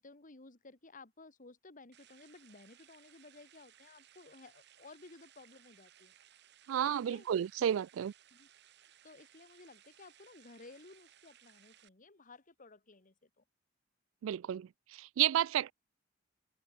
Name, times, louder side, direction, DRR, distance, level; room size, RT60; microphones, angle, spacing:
voice 1, 0.0-6.1 7.0-7.3 8.3-8.5 9.0-13.4, left 3 dB, 40° left, 1.9 m, -56 dB
sound 1, 1.9-11.9, right 11 dB, 60° right, 1.2 m, -63 dB
voice 2, 6.7-8.1 14.2-15.7, right 10 dB, 75° right, 0.3 m, -32 dB
open air
head